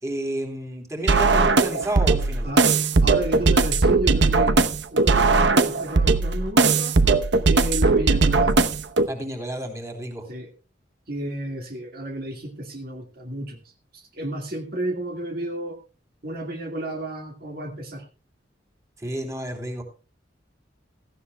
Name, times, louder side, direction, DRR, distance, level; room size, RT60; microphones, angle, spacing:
voice 1, 0.0-2.5 9.1-10.3 19.0-19.8, right 1 dB, 15° right, 3 dB, 3.2 m, -30 dB
sound 1, 1.1-9.1, right 3 dB, 70° right, 0.9 m, -19 dB
voice 2, 3.0-4.6 4.9-7.0 7.5-8.6 10.3-10.5 11.1-15.8 16.2-18.1, right 1 dB, 55° right, 3 dB, 2.0 m, -32 dB
17.0 x 14.5 x 2.3 m, 0.33 s
head